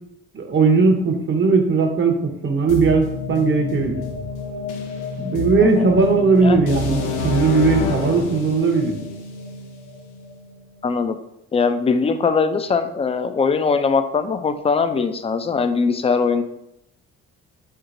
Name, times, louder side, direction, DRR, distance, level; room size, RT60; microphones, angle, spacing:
voice 1, 0.3-4.0 5.2-8.9, right 4 dB, 40° right, 4 dB, 0.8 m, -18 dB
sound 1, 2.7-10.6, left 4 dB, 85° left, 0.7 m, -28 dB
voice 2, 10.8-11.2 11.5-16.4, left 5 dB, 20° left, 9 dB, 0.3 m, -21 dB
4.5 x 3.8 x 2.6 m, 0.80 s
cardioid pair, 90°, 30 cm